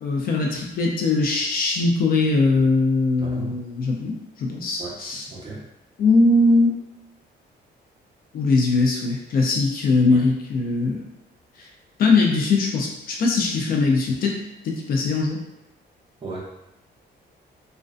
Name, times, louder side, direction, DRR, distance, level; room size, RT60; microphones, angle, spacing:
voice 1, 0.0-5.2 6.0-6.8 8.3-11.0 11.6-11.7 12.0-14.4 14.6-15.4, left 3 dB, 55° left, 0 dB, 0.4 m, -21 dB
voice 2, 3.2-3.6 4.8-5.0 5.3-5.6 10.1-10.2 16.2-16.4, right 3 dB, 30° right, -5 dB, 0.6 m, -35 dB
2.5 x 2.1 x 2.3 m, 0.93 s
cardioid pair, 170°, 19 cm